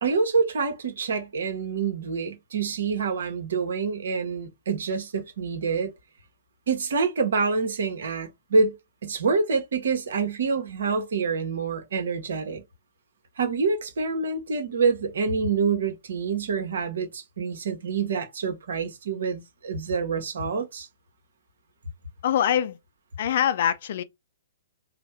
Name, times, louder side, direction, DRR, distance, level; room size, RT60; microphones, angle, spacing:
voice 1, 0.0-5.9 6.7-8.7 9.0-12.6 13.4-20.9, right 4 dB, 65° right, 1.0 m, -26 dB
voice 2, 22.2-22.8 23.2-24.0, left 10 dB, 50° left, 0.4 m, -23 dB
3.3 x 2.1 x 4.2 m
figure-of-eight pair, 120°, 0 cm